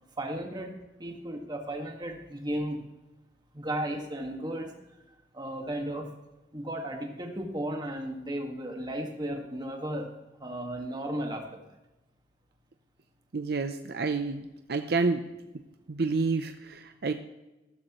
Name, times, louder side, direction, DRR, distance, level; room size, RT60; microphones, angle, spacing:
voice 1, 0.2-0.7 1.0-2.8 3.5-4.7 5.3-6.1 6.5-10.1 10.4-11.7, right 1 dB, 25° right, 2 dB, 1.7 m, -34 dB
voice 2, 13.3-14.4 14.7-15.2 15.9-17.1, right 4 dB, 60° right, 7 dB, 0.6 m, -28 dB
15.0 x 13.0 x 3.1 m, 1.0 s
head